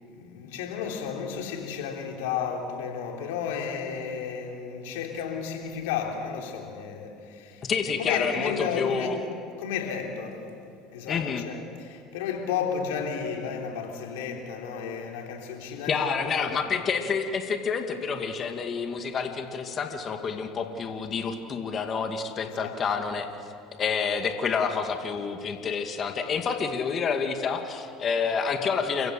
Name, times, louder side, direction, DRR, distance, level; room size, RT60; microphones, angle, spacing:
voice 1, 0.1-7.7 8.0-9.2 9.6-10.4 10.9-16.1 16.4-16.7 22.4-22.8, left 7 dB, 75° left, 3.4 m, -33 dB
voice 2, 7.6-9.1 11.1-11.4 15.9-23.3 23.8-29.1, left 6 dB, 40° left, 2.2 m, -28 dB
29.5 x 15.5 x 7.8 m
hypercardioid pair, 80°, 0 cm